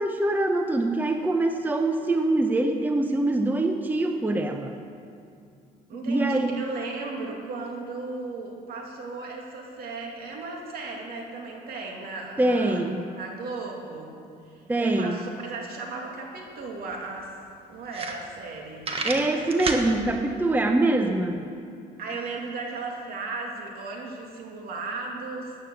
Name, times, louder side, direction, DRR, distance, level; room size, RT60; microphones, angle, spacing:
voice 1, 0.0-4.8 5.9-6.6 12.4-13.1 14.7-15.2 19.0-21.5, right 2 dB, 10° right, 5 dB, 0.8 m, -24 dB
voice 2, 5.9-12.9 13.2-14.2 14.5-17.3 17.7-18.8 22.0-25.6, right 3 dB, 65° right, 0 dB, 2.7 m, -36 dB
sound 1, 16.5-16.6 16.9-17.0 17.5-17.6 17.9-18.5 18.8-19.9, right 3 dB, 35° right, 1.5 m, -30 dB
15.0 x 9.6 x 6.5 m, 2.4 s
cardioid pair, 110°, 17 cm